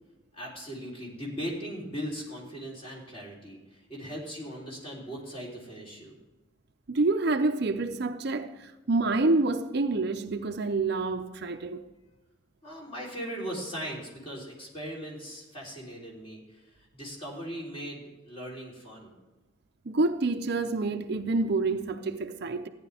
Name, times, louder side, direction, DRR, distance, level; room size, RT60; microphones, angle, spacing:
voice 1, 0.3-6.2 12.6-19.2, equal, 30° left, 3.5 m, -39 dB
voice 2, 6.9-11.9 19.9-22.7, right 3 dB, 55° right, 0.6 m, -27 dB
14.5 x 10.0 x 3.5 m
head